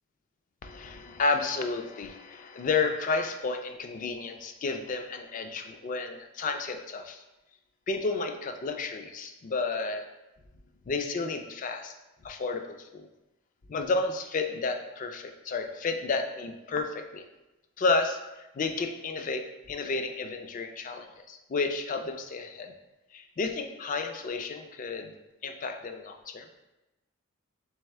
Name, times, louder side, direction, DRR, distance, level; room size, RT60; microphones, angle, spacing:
voice 1, 0.6-7.2 7.9-10.0 10.9-11.9 12.2-12.6 12.9-13.1 13.7-17.2 17.8-22.7 23.1-25.1 25.4-26.5, left 3 dB, 40° left, 6 dB, 0.3 m, -31 dB
3.4 x 3.4 x 3.2 m, 0.99 s
head